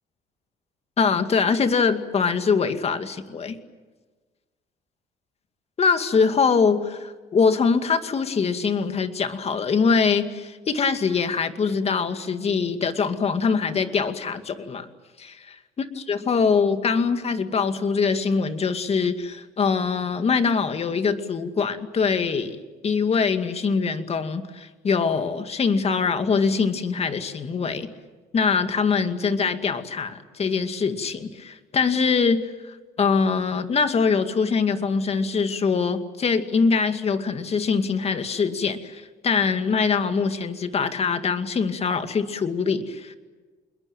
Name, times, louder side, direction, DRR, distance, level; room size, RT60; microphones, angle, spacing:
voice 1, 1.0-3.6 5.8-14.9 15.2-15.6 16.1-22.6 22.8-27.9 28.3-43.2, left 5 dB, 35° left, 8 dB, 2.4 m, -23 dB
28.0 x 21.5 x 9.1 m, 1.3 s
cardioid pair, 110°, 17 cm